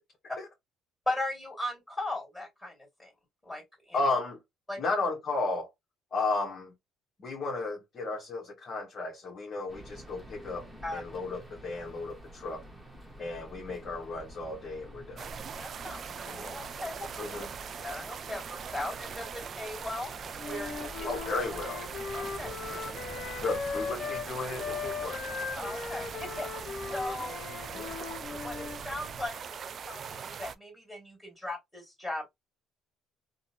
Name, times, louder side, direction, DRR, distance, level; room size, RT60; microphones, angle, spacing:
voice 1, 1.1-3.1 3.4-4.0 4.7-4.8 10.8-11.0 15.6-17.2 17.8-21.1 22.1-22.9 25.5-27.8 28.4-32.3, left 1 dB, 15° left, 2.2 m, -38 dB
voice 2, 3.9-4.4 4.8-5.7 6.1-6.7 7.2-10.7 10.9-12.6 13.2-15.3 17.2-17.5 21.0-21.8 23.4-25.2 27.7-28.0, left 3 dB, 40° left, 1.2 m, -34 dB
sound 1, 9.7-29.3, equal, 10° right, 1.1 m, -49 dB
sound 2, 15.2-30.6, right 7 dB, 45° right, 0.3 m, -41 dB
Wind instrument woodwind instrument, 20.4-24.3 24.6-28.8, left 5 dB, 55° left, 0.7 m, -38 dB
3.6 x 2.2 x 2.8 m
cardioid pair, 105°, 0 cm